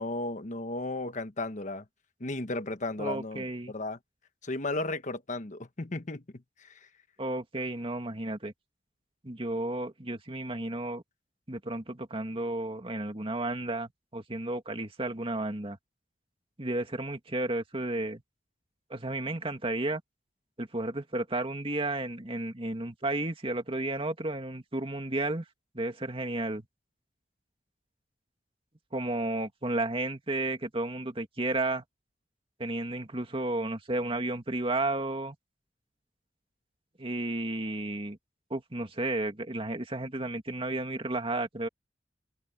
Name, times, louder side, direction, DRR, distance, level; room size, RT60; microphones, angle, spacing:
voice 1, 0.0-1.8 2.2-4.0 4.4-6.8, left 2 dB, 45° left, 1.3 m, -35 dB
voice 2, 3.0-3.7 7.2-8.5 9.2-11.0 11.5-15.8 16.6-18.2 18.9-20.0 20.6-25.4 25.7-26.7 28.9-31.8 32.6-35.4 37.0-38.2 38.5-41.7, right 2 dB, 30° right, 2.2 m, -32 dB
head